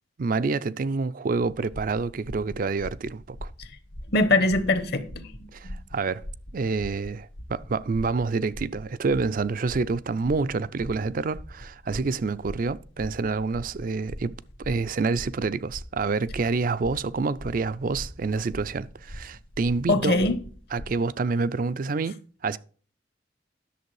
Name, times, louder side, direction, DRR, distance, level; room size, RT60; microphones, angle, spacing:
voice 1, 0.2-3.5 5.5-6.3 6.5-14.4 14.6-20.2 20.7-22.6, right 4 dB, 45° right, 0.4 m, -27 dB
sound 1, 1.4-20.9, equal, 90° left, 1.5 m, -42 dB
voice 2, 4.1-5.8 19.9-20.4, left 2 dB, 60° left, 1.0 m, -23 dB
11.0 x 6.8 x 4.8 m
head